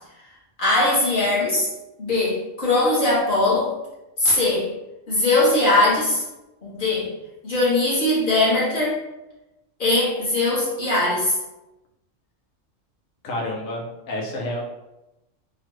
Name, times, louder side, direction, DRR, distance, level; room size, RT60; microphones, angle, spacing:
voice 1, 0.6-1.7 2.0-3.7 4.2-4.7 5.1-6.2 6.6-7.1 7.4-9.0 9.8-11.4, left 2 dB, 45° left, -8 dB, 1.3 m, -20 dB
voice 2, 13.2-14.6, left 1 dB, 90° left, 0 dB, 1.1 m, -29 dB
3.1 x 2.3 x 3.0 m, 0.97 s
omnidirectional pair, 1.3 m